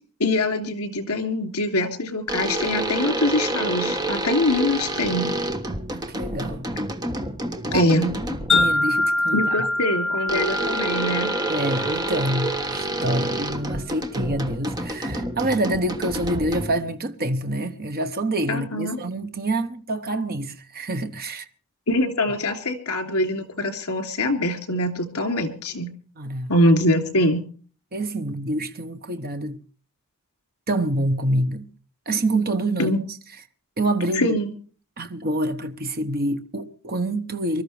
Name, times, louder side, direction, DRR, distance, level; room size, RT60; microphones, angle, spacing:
voice 1, 0.2-5.3 7.7-8.1 9.3-11.3 18.5-19.0 21.9-25.9 26.5-27.4 32.8-33.0 34.2-34.5, left 1 dB, 75° left, 2.9 m, -23 dB
sound 1, 2.3-8.9 10.3-16.9, right 2 dB, 20° right, 1.4 m, -28 dB
voice 2, 5.9-6.6 7.7-7.9 8.5-9.4 11.5-21.5 26.2-26.5 27.9-29.6 30.7-31.7 32.1-33.0 33.8-34.4 35.0-37.6, right 1 dB, 45° right, 1.1 m, -26 dB
Wind chime, 8.5-12.8, left 2 dB, 5° left, 3.2 m, -25 dB
24.5 x 13.5 x 3.3 m
head